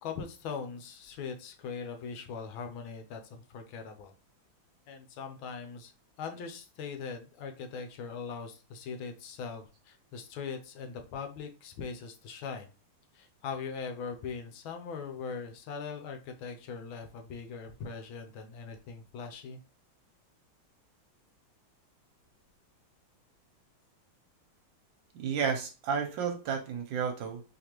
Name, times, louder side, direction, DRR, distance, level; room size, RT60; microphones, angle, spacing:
voice 1, 0.0-4.1 4.9-5.9 6.2-12.7 13.1-19.6, left 5 dB, 75° left, 6 dB, 1.4 m, -41 dB
voice 2, 25.1-27.4, right 6 dB, 75° right, 4 dB, 1.2 m, -32 dB
4.1 x 3.0 x 3.0 m, 0.33 s
omnidirectional pair, 2.3 m